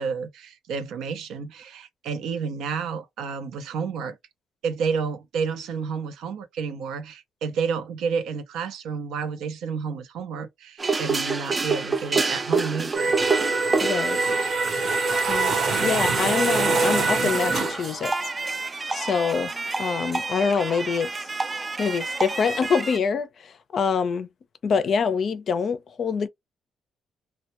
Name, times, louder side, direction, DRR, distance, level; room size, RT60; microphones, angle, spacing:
voice 1, 0.0-4.2 4.6-13.2 15.7-16.0, right 5 dB, 85° right, 0.5 m, -30 dB
sound 1, 10.8-23.0, right 4 dB, 30° right, 0.3 m, -29 dB
Laser Machine Diagnostic Start Up, 12.9-18.0, right 3 dB, 50° right, 0.7 m, -24 dB
voice 2, 13.8-14.2 15.3-18.1 18.9-19.5 19.8-21.1 21.8-24.3 24.6-26.3, left 6 dB, 55° left, 0.4 m, -25 dB
2.1 x 2.1 x 2.8 m
cardioid pair, 90°, 0 cm